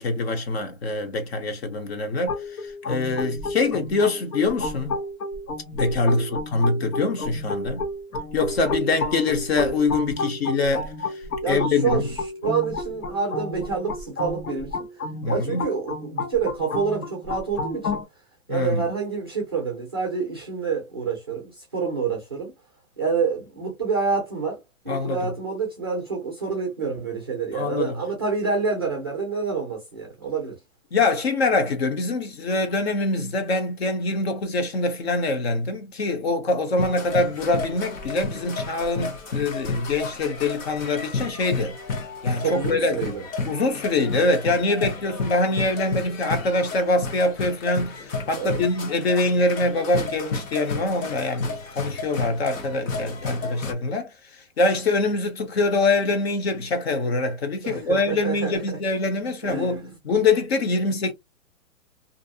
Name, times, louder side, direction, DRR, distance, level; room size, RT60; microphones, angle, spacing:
voice 1, 0.0-2.4 2.6-5.0 5.7-7.8 8.3-10.9 11.5-12.1 15.2-15.6 18.5-18.8 24.9-25.2 27.5-28.0 30.9-41.8 42.2-43.0 43.4-54.1 54.6-61.1, left 3 dB, 50° left, 0.7 m, -24 dB
sound 1, 2.3-18.0, left 2 dB, 90° left, 1.0 m, -31 dB
voice 2, 3.0-3.3 5.9-6.4 11.4-14.8 15.3-18.0 18.5-22.5 23.0-24.6 24.8-30.6 42.4-43.2 48.3-48.6 57.6-58.8 59.4-59.9, right 5 dB, 20° right, 0.4 m, -28 dB
sound 2, 36.8-53.7, left 3 dB, 65° left, 1.1 m, -32 dB
2.5 x 2.0 x 2.6 m
hypercardioid pair, 165°, 42 cm